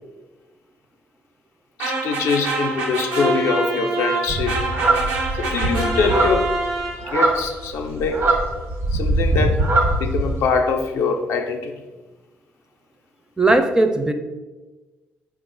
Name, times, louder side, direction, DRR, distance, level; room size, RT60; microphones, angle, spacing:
voice 1, 1.8-4.6 5.3-6.5 7.1-8.3 8.9-9.6 10.0-11.8, left 5 dB, 75° left, 4 dB, 0.4 m, -23 dB
sound 1, 1.8-7.3, right 3 dB, 85° right, 0.8 m, -26 dB
sound 2, 4.3-10.4, right 2 dB, 65° right, 1.0 m, -21 dB
voice 2, 13.4-14.1, right 2 dB, 15° right, 7 dB, 0.4 m, -17 dB
4.2 x 2.4 x 3.8 m, 1.2 s
supercardioid pair, 55°, 5 cm